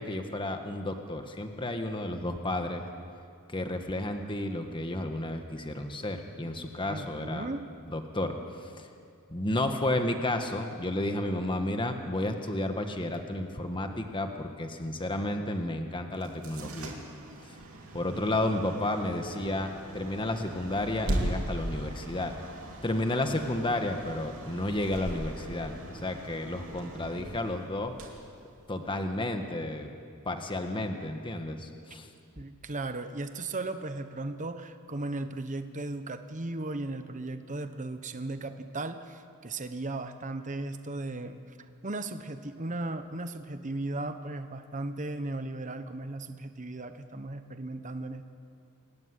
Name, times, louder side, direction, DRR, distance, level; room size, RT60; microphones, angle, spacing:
voice 1, 0.0-2.8 3.5-7.5 7.9-8.3 8.6-8.9 9.3-16.9 17.9-22.3 22.8-25.7 26.0-27.9 28.7-29.9 30.2-32.1, left 1 dB, 25° left, 5 dB, 1.5 m, -32 dB
voice 2, 6.9-7.7 32.4-41.6 41.8-48.3, right 2 dB, 35° right, 9 dB, 1.1 m, -36 dB
sound 1, 16.1-29.1, right 1 dB, 70° right, 3.4 m, -39 dB
27.0 x 14.0 x 9.9 m, 2.4 s
head